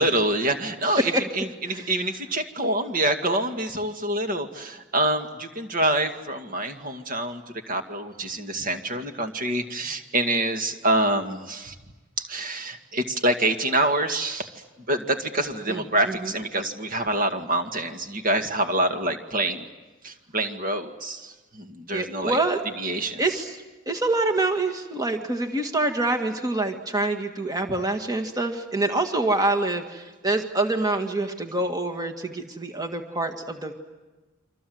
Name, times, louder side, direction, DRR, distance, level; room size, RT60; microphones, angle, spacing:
voice 1, 0.0-11.8 12.2-14.5 14.9-19.7 20.0-22.4 22.8-23.2, right 1 dB, 40° right, 5 dB, 2.1 m, -26 dB
voice 2, 21.9-22.6 23.2-23.5 23.9-33.7, right 2 dB, 15° right, 5 dB, 1.8 m, -26 dB
29.0 x 25.5 x 7.9 m, 1.2 s
head